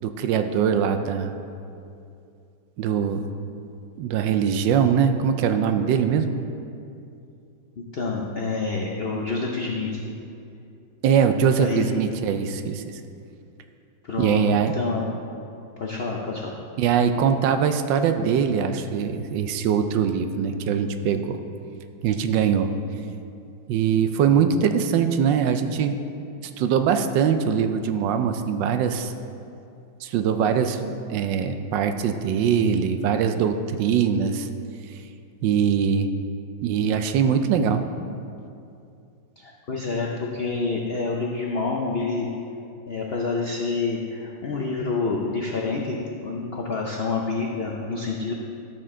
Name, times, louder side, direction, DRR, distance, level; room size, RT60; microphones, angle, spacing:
voice 1, 0.0-1.3 2.8-3.3 4.0-6.3 11.0-12.8 14.2-14.8 16.8-21.4 22.0-22.7 23.7-26.0 26.6-29.1 30.0-34.5 35.4-36.1 36.6-37.8, right 7 dB, 80° right, 8 dB, 1.2 m, -22 dB
voice 2, 7.8-10.0 11.6-12.0 14.0-14.4 14.7-15.1 15.8-16.6 39.4-42.3 42.9-48.3, left 4 dB, 70° left, -1 dB, 0.5 m, -28 dB
12.5 x 6.7 x 3.7 m, 2.6 s
omnidirectional pair, 2.0 m